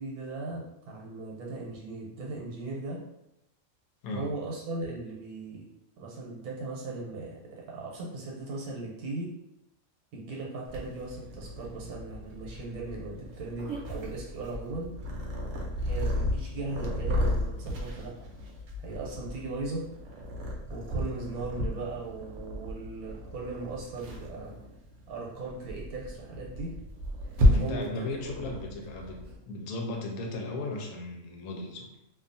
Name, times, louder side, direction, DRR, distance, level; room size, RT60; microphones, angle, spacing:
voice 1, 0.0-3.0 4.1-5.7 6.0-9.3 10.1-15.0 15.8-18.3 18.8-19.9 20.7-24.5 25.1-26.8 27.6-28.1, right 3 dB, 85° right, -3 dB, 1.2 m, -38 dB
Purr, 10.7-29.4, left 1 dB, 65° right, 0.8 m, -33 dB
voice 2, 27.5-29.2 29.5-31.9, left 2 dB, 75° left, 1 dB, 1.0 m, -36 dB
2.6 x 2.4 x 2.5 m, 0.84 s
omnidirectional pair, 1.6 m